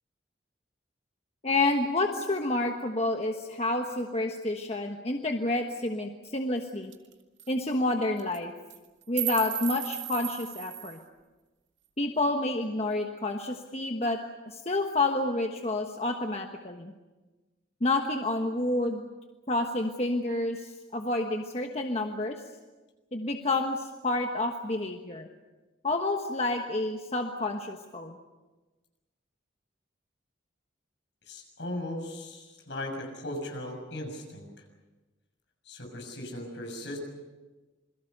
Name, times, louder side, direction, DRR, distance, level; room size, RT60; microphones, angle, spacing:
voice 1, 1.4-6.9 7.5-8.5 9.1-11.0 12.0-14.2 14.5-16.9 17.8-19.1 19.5-22.4 23.1-25.3 25.8-28.2, left 2 dB, 35° left, 3 dB, 1.3 m, -29 dB
sound 1, 6.2-6.3 6.6-6.7 6.9-7.1 7.4-7.5 8.2-8.4 8.7-11.0, right 14 dB, 75° right, 2.1 m, -35 dB
voice 2, 31.3-34.5 35.6-37.0, left 1 dB, 65° left, 3 dB, 6.6 m, -38 dB
27.5 x 22.0 x 6.7 m, 1.2 s
head